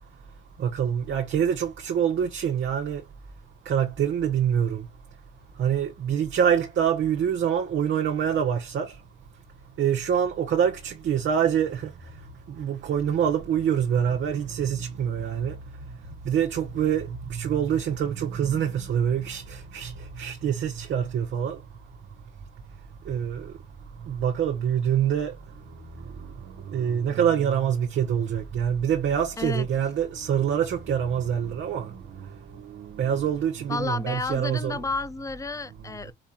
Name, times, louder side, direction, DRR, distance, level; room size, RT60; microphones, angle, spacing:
voice 1, 0.6-3.0 3.7-4.8 5.6-8.9 9.8-11.9 12.6-15.6 16.2-21.6 23.1-23.5 24.1-25.4 26.7-31.9 32.7-34.8, right 8 dB, 70° right, 1.1 m, -25 dB
voice 2, 29.4-29.7 33.7-36.1, left 3 dB, 15° left, 0.5 m, -31 dB
4.8 x 3.5 x 2.9 m
cardioid pair, 90°, 20 cm